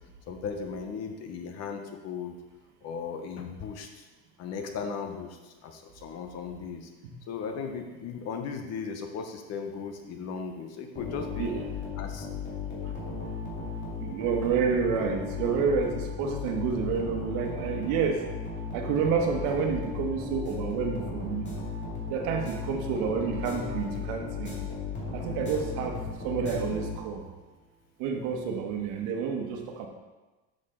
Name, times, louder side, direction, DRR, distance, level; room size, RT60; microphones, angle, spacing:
voice 1, 0.3-2.4 2.8-3.9 4.4-6.9 7.3-11.5 12.0-12.3, left 5 dB, 50° left, 5 dB, 1.0 m, -37 dB
sound 1, 10.9-27.4, left 5 dB, 30° left, 2.3 m, -36 dB
voice 2, 14.0-18.2 18.7-21.5 22.1-24.5 25.1-27.2 28.0-29.9, right 6 dB, 70° right, 3 dB, 1.3 m, -29 dB
6.5 x 6.4 x 3.8 m, 1.2 s
supercardioid pair, 125°, 34 cm